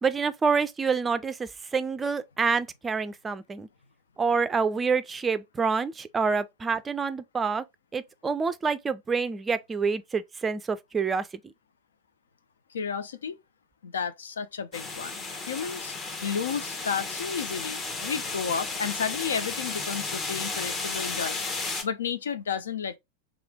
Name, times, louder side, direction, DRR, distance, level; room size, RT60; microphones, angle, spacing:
voice 1, 0.0-3.7 4.2-7.6 7.9-11.3, right 5 dB, 15° right, 0.4 m, -27 dB
voice 2, 12.7-13.4 13.8-15.9 16.2-21.4 21.8-23.0, left 6 dB, 65° left, 0.5 m, -32 dB
sound 1, 14.7-21.8, left 3 dB, 25° left, 1.1 m, -33 dB
3.6 x 3.3 x 3.4 m
figure-of-eight pair, 90°, 0 cm